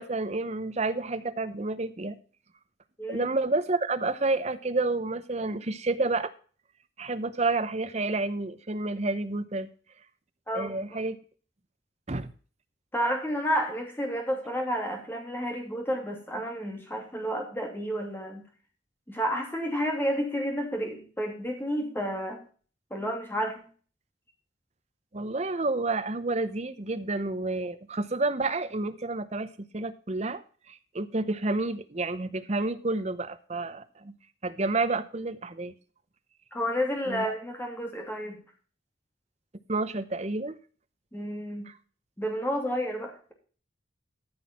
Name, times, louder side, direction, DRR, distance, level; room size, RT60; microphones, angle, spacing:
voice 1, 0.0-2.2 3.1-6.3 7.0-9.7 10.5-11.2 12.1-12.3 25.1-30.4 30.7-34.1 34.4-35.7 37.1-37.3 39.7-40.6 41.7-41.8, right 2 dB, 35° right, 12 dB, 0.8 m, -30 dB
voice 2, 12.9-18.4 19.1-22.4 22.9-23.6 36.5-38.4 41.1-41.7 42.2-43.3, equal, 10° left, 2 dB, 2.6 m, -31 dB
13.5 x 6.2 x 4.3 m, 0.40 s
head